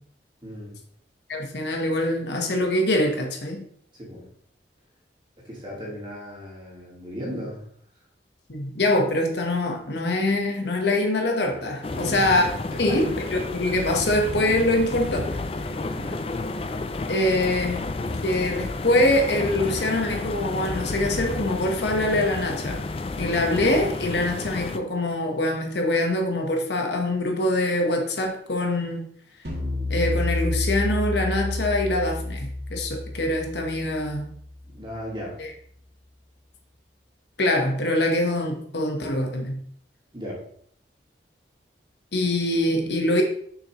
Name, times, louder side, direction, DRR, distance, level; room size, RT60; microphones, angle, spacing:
voice 1, 0.4-0.8 3.9-4.3 5.4-7.6 11.9-12.3 12.7-13.0 15.9-16.2 34.6-35.4 40.1-40.4, equal, 25° right, -3 dB, 2.2 m, -36 dB
voice 2, 1.3-3.6 8.5-12.5 12.8-15.3 17.1-17.8 18.2-22.8 23.2-29.0 29.9-34.3 35.4-35.5 37.4-39.6 42.1-43.2, left 1 dB, 70° left, 2 dB, 1.2 m, -24 dB
sound 1, 11.8-24.8, left 2 dB, 30° left, 0.4 m, -31 dB
sound 2, 29.4-34.8, left 2 dB, 55° right, 1.7 m, -29 dB
6.9 x 5.9 x 3.1 m, 0.64 s
head